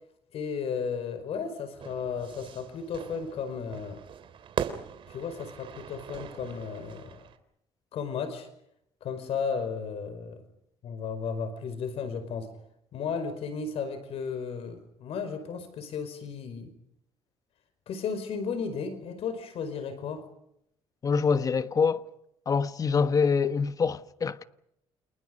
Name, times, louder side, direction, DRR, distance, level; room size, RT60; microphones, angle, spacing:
voice 1, 0.3-4.0 5.1-7.2 7.9-8.5 9.0-10.4 10.8-12.5 12.9-16.7 17.9-20.3, left 6 dB, 65° left, 5.0 m, -34 dB
Fire / Fireworks, 1.8-7.4, right 8 dB, 50° right, 3.6 m, -40 dB
voice 2, 21.0-22.0 22.5-24.4, left 5 dB, 35° left, 1.3 m, -25 dB
30.0 x 29.0 x 5.3 m
cardioid pair, 120°, 11 cm